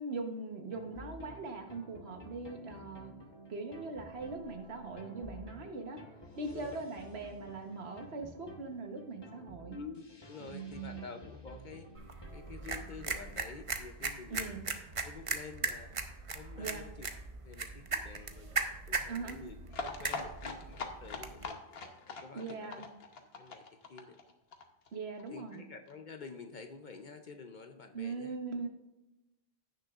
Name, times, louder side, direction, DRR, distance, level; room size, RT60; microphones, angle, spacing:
voice 1, 0.0-3.1 3.5-6.0 6.4-9.8 10.4-11.0 14.3-14.6 16.6-16.8 19.1-19.4 22.3-22.9 24.9-25.6 27.9-28.7, right 3 dB, 80° right, 4 dB, 1.4 m, -41 dB
sound 1, 0.7-13.2, equal, 25° left, 1.1 m, -52 dB
voice 2, 6.5-6.8 9.7-11.9 12.3-14.5 15.0-15.9 16.3-17.1 17.4-21.6 22.1-22.7 23.4-24.2 25.3-28.3, left 4 dB, 55° left, 6 dB, 0.7 m, -49 dB
sound 2, 11.9-21.5, right 4 dB, 35° right, 0.7 m, -39 dB
sound 3, 19.7-25.3 25.5-25.6 25.9-26.0 26.2-26.3, left 4 dB, 70° left, 1.2 m, -42 dB
16.0 x 6.5 x 2.4 m, 0.96 s
omnidirectional pair, 1.1 m